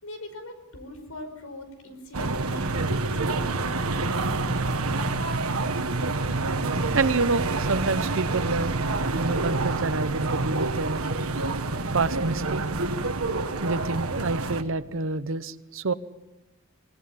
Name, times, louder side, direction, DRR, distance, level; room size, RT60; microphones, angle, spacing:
voice 1, 0.0-3.0, left 1 dB, 85° left, 8 dB, 5.2 m, -40 dB
sound 1, 2.1-14.6, right 3 dB, 85° right, 1.5 m, -27 dB
voice 2, 6.9-8.7 9.2-11.1 11.9-12.6 13.6-15.9, right 3 dB, 65° right, 14 dB, 0.9 m, -27 dB
25.5 x 18.5 x 8.5 m, 1.0 s
head